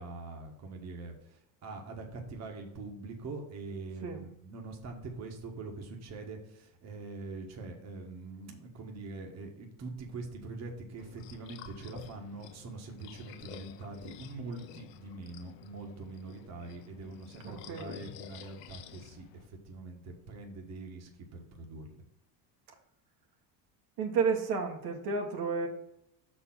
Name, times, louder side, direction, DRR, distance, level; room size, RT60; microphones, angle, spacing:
voice 1, 0.0-22.0, right 3 dB, 40° right, 2 dB, 1.5 m, -43 dB
sound 1, 11.0-19.5, left 12 dB, 80° left, 0.8 m, -51 dB
voice 2, 17.4-17.9 24.0-25.7, right 5 dB, 65° right, 2 dB, 1.5 m, -31 dB
6.6 x 4.4 x 6.1 m, 0.79 s
cardioid pair, 140°, 42 cm